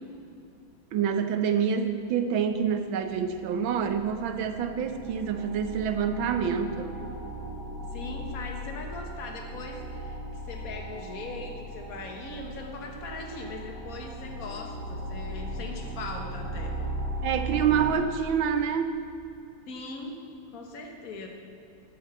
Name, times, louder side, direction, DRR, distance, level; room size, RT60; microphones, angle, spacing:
voice 1, 0.9-7.0 17.2-19.0, right 7 dB, 80° right, 8 dB, 1.6 m, -27 dB
sound 1, 2.5-2.6 2.8-17.9, right 1 dB, 90° left, 2.9 m, -38 dB
voice 2, 7.9-10.2 10.5-16.8 19.7-20.2 20.5-21.3, left 3 dB, 50° left, 2 dB, 1.7 m, -40 dB
11.5 x 7.1 x 8.4 m, 2.6 s
omnidirectional pair, 2.1 m